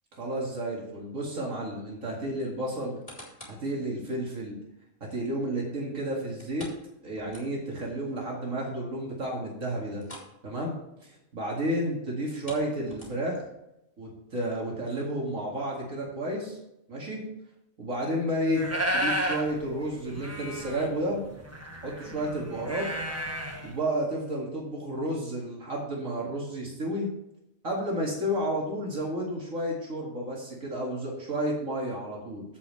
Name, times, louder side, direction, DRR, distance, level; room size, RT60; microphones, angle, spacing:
voice 1, 0.1-3.0 3.5-4.6 5.0-6.7 7.0-10.0 10.4-13.4 14.0-16.6 16.9-17.2 17.8-18.7 18.9-21.2 21.8-22.9 23.6-27.1 27.6-32.4, right 1 dB, 70° right, -2 dB, 2.5 m, -31 dB
sound 1, 2.8-3.7 4.2-4.3 6.4-7.8 8.2-8.3 8.7-8.8 9.9-10.4 10.7-10.9 12.2-13.4 14.1-14.2, equal, 25° left, 3.1 m, -47 dB
sound 2, 18.5-19.5 19.8-19.9 20.1-23.7, equal, 10° right, 1.1 m, -32 dB
15.0 x 5.4 x 3.2 m, 0.86 s
omnidirectional pair, 1.5 m